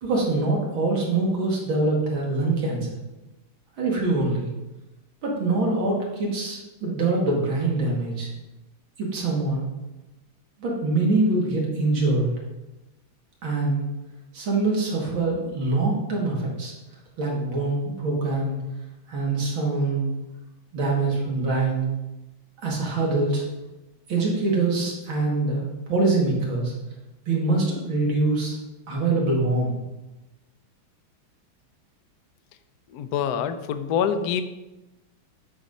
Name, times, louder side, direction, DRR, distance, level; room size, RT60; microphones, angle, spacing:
voice 1, 0.0-3.0 3.8-4.5 5.2-8.3 9.0-9.6 10.6-12.3 13.4-13.8 14.3-16.7 17.2-18.6 19.1-20.1 20.7-21.8 22.6-23.5 24.1-26.7 27.3-28.6 28.9-29.7, right 3 dB, 75° right, -2 dB, 2.6 m, -24 dB
voice 2, 32.9-34.4, left 8 dB, 75° left, 10 dB, 0.9 m, -25 dB
8.0 x 4.2 x 5.3 m, 1.0 s
omnidirectional pair, 2.2 m